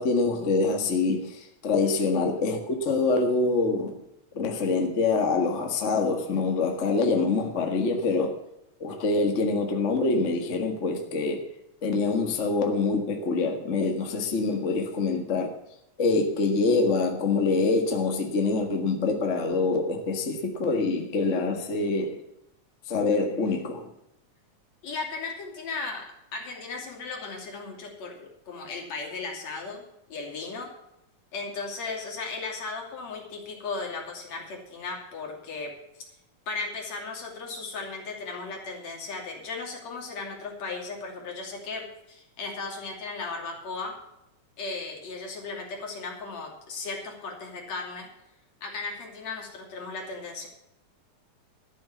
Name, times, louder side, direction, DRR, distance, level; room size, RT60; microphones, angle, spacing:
voice 1, 0.0-4.0 4.3-8.4 8.8-11.5 11.8-15.5 16.0-22.2 22.9-23.9, left 3 dB, 35° left, 3 dB, 1.2 m, -25 dB
voice 2, 24.8-26.1 26.3-29.8 30.1-30.7 31.3-35.7 36.5-43.9 44.6-48.1 48.6-50.5, left 4 dB, 60° left, 0 dB, 3.9 m, -36 dB
13.0 x 7.7 x 7.1 m, 0.84 s
omnidirectional pair, 3.5 m